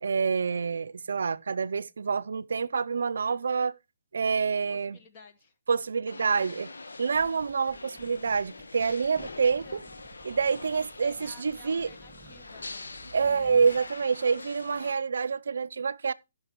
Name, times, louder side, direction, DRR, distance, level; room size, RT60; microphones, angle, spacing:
voice 1, 0.0-3.7 4.1-5.0 5.7-6.7 7.0-9.6 10.2-11.9 13.1-16.1, right 5 dB, 75° right, 0.4 m, -27 dB
voice 2, 4.7-5.5 9.4-9.8 11.0-12.8 13.2-13.6, left 5 dB, 35° left, 1.2 m, -52 dB
sound 1, 6.1-14.9, left 3 dB, 85° left, 1.1 m, -44 dB
Zipper (clothing), 7.0-14.9, right 5 dB, 15° right, 1.9 m, -55 dB
17.5 x 5.8 x 3.0 m
hypercardioid pair, 145°, 0 cm